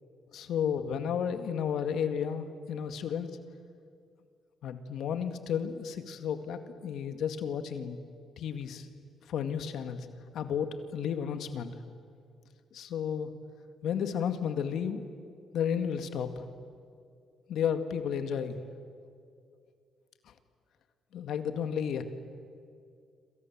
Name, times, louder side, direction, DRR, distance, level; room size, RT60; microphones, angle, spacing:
voice 1, 0.3-3.3 4.6-8.0 8.4-8.9 9.3-10.1 10.3-11.7 12.7-13.3 13.8-15.0 15.5-16.4 17.5-18.6 21.1-22.0, left 8 dB, 75° left, 8 dB, 2.1 m, -32 dB
27.5 x 27.5 x 7.5 m, 2.3 s
cardioid pair, 90°, 0 cm